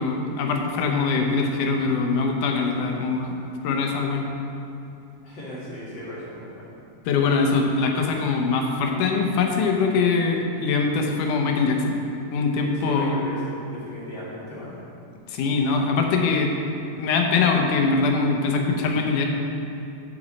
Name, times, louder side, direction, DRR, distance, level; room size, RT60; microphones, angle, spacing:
voice 1, 0.0-3.4 3.6-4.3 7.1-11.8 12.3-13.2 15.3-16.5 17.0-19.3, left 4 dB, 75° left, 2 dB, 2.3 m, -22 dB
voice 2, 5.2-6.7 12.7-14.8, left 1 dB, 40° left, -8 dB, 2.0 m, -36 dB
9.8 x 8.0 x 4.1 m, 2.8 s
omnidirectional pair, 3.9 m